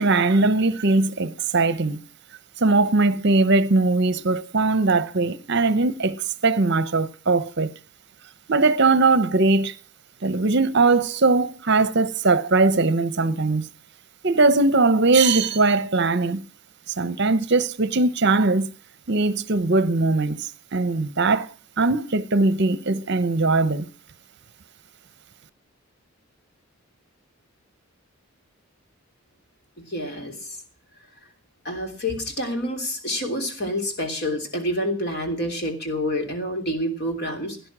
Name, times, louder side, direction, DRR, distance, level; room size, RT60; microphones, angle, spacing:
voice 1, 0.0-2.0 2.6-6.2 6.4-7.7 8.5-9.7 10.2-13.7 14.2-16.4 17.0-18.7 19.1-21.5 21.8-23.9, right 3 dB, 50° right, 0.8 m, -20 dB
voice 2, 29.9-30.6 31.6-37.7, left 1 dB, 45° left, 3.2 m, -28 dB
17.0 x 10.5 x 6.0 m
head